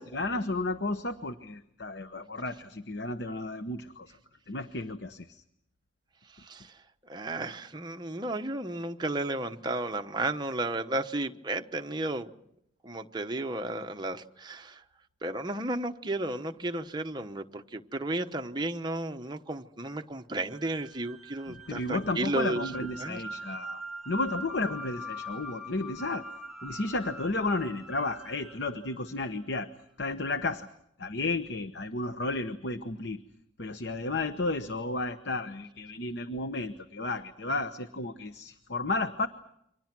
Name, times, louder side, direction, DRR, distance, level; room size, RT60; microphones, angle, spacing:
voice 1, 0.0-4.1 4.5-5.4 21.5-26.2 26.6-29.7 30.0-30.7 31.0-33.2 33.6-39.3, left 2 dB, 55° left, 1.0 m, -33 dB
voice 2, 6.3-6.7 7.1-12.3 12.8-14.8 15.2-22.6 23.0-23.2, right 2 dB, 20° right, 1.0 m, -33 dB
sound 1, 20.5-29.7, right 1 dB, 5° right, 2.4 m, -43 dB
29.5 x 24.5 x 6.1 m
head